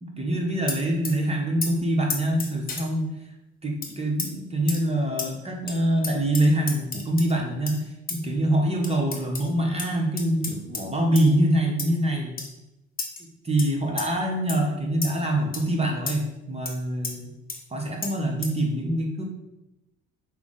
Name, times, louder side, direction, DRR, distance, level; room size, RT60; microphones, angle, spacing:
voice 1, 0.0-3.2 3.6-12.4 13.4-17.3 17.7-19.2, right 1 dB, 20° right, 0 dB, 0.8 m, -25 dB
sound 1, 0.7-1.2 1.6-1.7 2.1-2.9 3.8-3.9 4.2-4.3 4.7-4.8 5.2-5.3 5.7-5.8 6.0-7.3 7.7-7.8 8.1-8.2 8.8-9.5 9.8-9.9 10.2-10.8 11.2-11.3 11.8-12.0 12.4-12.5 13.0-13.2 13.6-13.7 14.0-14.1 14.5-14.6 15.0-15.2 15.5-15.7 16.1-16.2 16.7-16.8 17.0-17.1 17.5-17.6 18.0-18.1 18.4-18.5, left 3 dB, 30° left, 0.9 m, -32 dB
5.8 x 2.0 x 3.7 m, 0.95 s
supercardioid pair, 80°, 31 cm